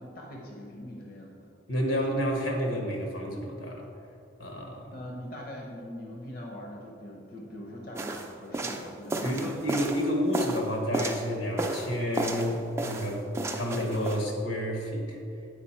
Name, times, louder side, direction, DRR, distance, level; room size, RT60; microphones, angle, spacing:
voice 1, 0.0-1.5 4.9-9.5 9.9-10.0, left 1 dB, 45° left, -1 dB, 0.7 m, -42 dB
voice 2, 1.7-3.9 4.4-4.9 9.2-13.2 13.5-15.2, equal, 85° left, 1 dB, 1.3 m, -30 dB
sound 1, 7.9-11.3 11.6-12.5 12.8-14.2, right 2 dB, 15° right, 0.4 m, -32 dB
8.5 x 5.1 x 4.3 m, 2.6 s
head